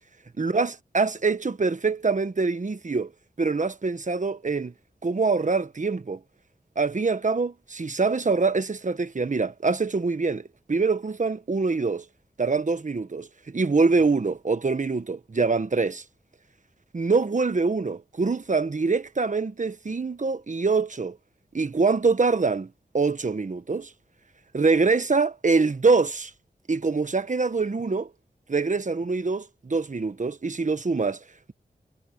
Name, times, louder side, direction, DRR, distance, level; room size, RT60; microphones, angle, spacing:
voice 1, 0.4-3.1 3.4-4.7 5.0-6.2 6.7-12.0 12.4-16.0 16.9-21.2 21.5-22.7 22.9-23.9 24.5-26.3 26.7-28.1 28.5-31.2, right 4 dB, 50° right, 1.4 m, -24 dB
wide cardioid pair, 60°, 16 cm